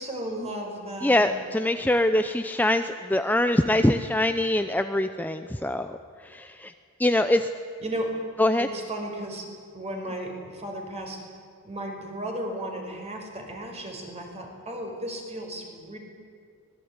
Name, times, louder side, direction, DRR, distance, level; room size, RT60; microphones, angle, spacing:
voice 1, 0.0-1.3 7.8-8.1 8.6-9.5 9.7-11.2 11.6-16.0, right 1 dB, 30° right, 2 dB, 5.3 m, -35 dB
voice 2, 1.0-6.0 6.2-6.7 7.0-7.5 8.4-8.7, left 1 dB, 10° left, 8 dB, 0.7 m, -23 dB
25.0 x 19.5 x 9.7 m, 2.3 s
head